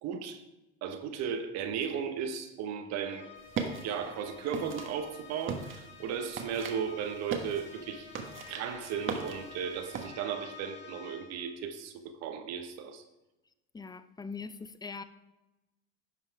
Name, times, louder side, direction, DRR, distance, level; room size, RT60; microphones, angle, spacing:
voice 1, 0.0-0.4 0.8-3.3 3.8-8.1 8.5-13.0, right 7 dB, 60° right, 1.3 m, -36 dB
sound 1, 3.0-11.5, left 6 dB, 40° left, 3.8 m, -50 dB
sound 2, 3.4-10.1, right 5 dB, 45° right, 1.4 m, -39 dB
voice 2, 13.7-15.0, left 4 dB, 15° left, 0.6 m, -41 dB
11.0 x 5.7 x 4.8 m
supercardioid pair, 100°, 29 cm